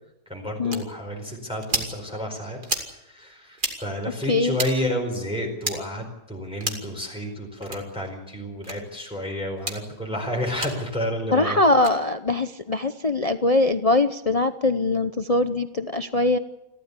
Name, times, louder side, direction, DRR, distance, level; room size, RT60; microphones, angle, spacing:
voice 1, 0.3-2.6 2.9-11.6, equal, 5° right, 0 dB, 4.5 m, -30 dB
sound 1, 0.7-0.8 1.6-1.9 2.6-2.9 3.5-3.7 4.5-4.7 5.6-5.8 6.6-6.9 7.6-7.8 8.6-8.8 9.6-9.8 10.6-10.7 11.7-11.9, right 2 dB, 30° right, 2.7 m, -29 dB
voice 2, 11.3-16.4, left 2 dB, 40° left, 9 dB, 0.5 m, -22 dB
29.0 x 13.0 x 8.3 m, 0.91 s
omnidirectional pair, 1.8 m